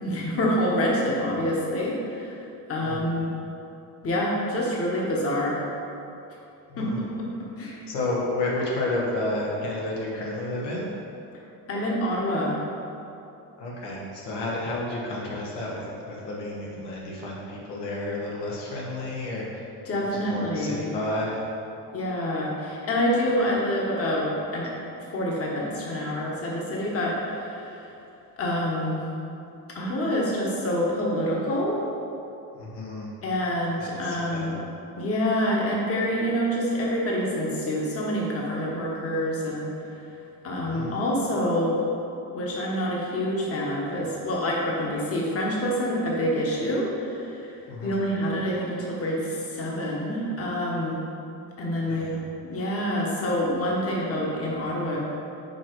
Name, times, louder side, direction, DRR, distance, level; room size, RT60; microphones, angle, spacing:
voice 1, 0.0-2.4 2.7-3.3 4.0-5.6 6.8-7.1 7.6-7.8 11.7-12.6 19.9-20.8 21.9-24.7 25.1-27.9 28.4-29.0 29.7-31.8 33.2-34.6 35.0-39.7 40.4-41.8 42.3-47.5 47.8-51.0 51.6-52.2 52.4-55.0, equal, 35° left, -3 dB, 1.2 m, -27 dB
voice 2, 6.7-7.0 7.9-10.9 13.6-19.6 20.1-21.4 32.5-33.1 33.8-34.5 40.6-41.0 47.7-48.1 51.9-52.2, left 2 dB, 90° left, -4 dB, 1.4 m, -31 dB
5.5 x 4.5 x 4.6 m, 2.7 s
cardioid pair, 125°, 40 cm